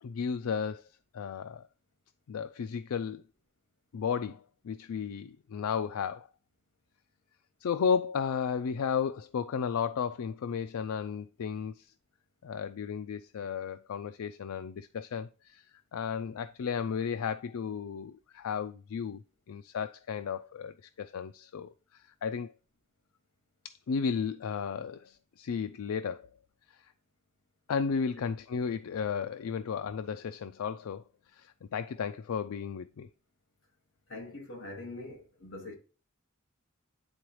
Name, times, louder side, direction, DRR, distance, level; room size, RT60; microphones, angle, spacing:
voice 1, 0.0-0.8 1.1-1.7 2.3-3.2 3.9-6.3 7.6-11.9 12.4-15.7 15.9-22.5 23.6-26.3 26.7-26.9 27.7-31.0 31.3-33.1, left 6 dB, 80° left, 0.4 m, -34 dB
voice 2, 34.1-35.8, left 2 dB, 60° left, 2.0 m, -43 dB
9.7 x 3.9 x 3.2 m
head